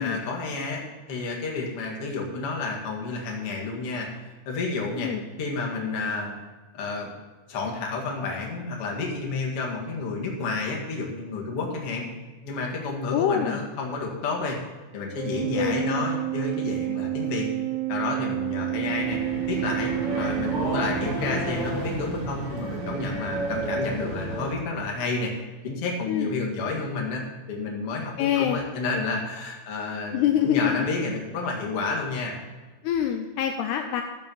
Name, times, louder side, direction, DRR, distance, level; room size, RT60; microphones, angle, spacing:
voice 1, 0.0-4.1 4.5-5.1 5.4-6.4 6.7-7.1 7.5-12.1 12.4-14.6 14.9-17.5 17.9-19.2 19.5-25.3 25.6-32.3, left 3 dB, 45° left, -1 dB, 2.2 m, -30 dB
voice 2, 13.1-13.6 15.5-16.1 18.6-18.9 26.1-26.3 28.2-28.6 30.1-30.9 32.8-34.0, left 10 dB, 85° left, 5 dB, 2.4 m, -25 dB
Organ, 15.1-21.7, right 19 dB, 80° right, 2.5 m, -30 dB
sound 1, 18.4-24.5, right 2 dB, 50° right, 2.7 m, -31 dB
12.5 x 7.5 x 5.5 m, 1.3 s
omnidirectional pair, 5.1 m